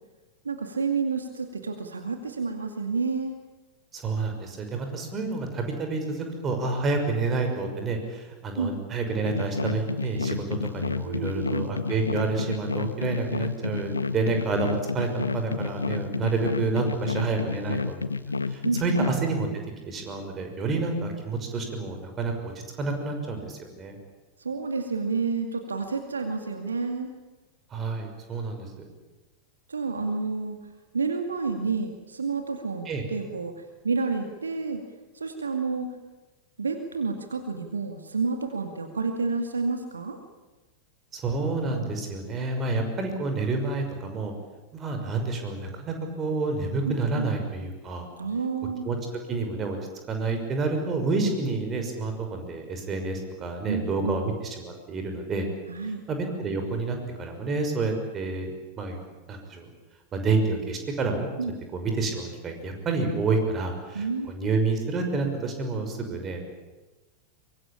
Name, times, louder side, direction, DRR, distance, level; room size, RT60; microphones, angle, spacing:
voice 1, 0.4-3.3 8.6-8.7 11.0-11.7 18.6-19.1 24.4-27.1 29.7-30.6 30.9-34.8 35.1-35.9 36.6-40.2 46.8-47.3 48.2-48.8 53.7-54.2 55.7-56.0 61.4-61.5 63.9-64.3, right 4 dB, 75° right, 6 dB, 2.2 m, -29 dB
voice 2, 3.9-18.0 18.5-19.5 19.9-23.9 27.7-28.7 32.9-33.0 41.1-44.3 44.7-48.1 48.8-49.0 49.3-49.8 50.1-55.5 56.1-59.0 59.3-59.7 60.1-61.3 61.7-66.4, right 3 dB, 25° right, 5 dB, 5.9 m, -29 dB
sound 1, 9.3-19.2, left 4 dB, 80° left, 1.0 m, -30 dB
24.0 x 22.5 x 8.8 m, 1.2 s
figure-of-eight pair, 90°, 0 cm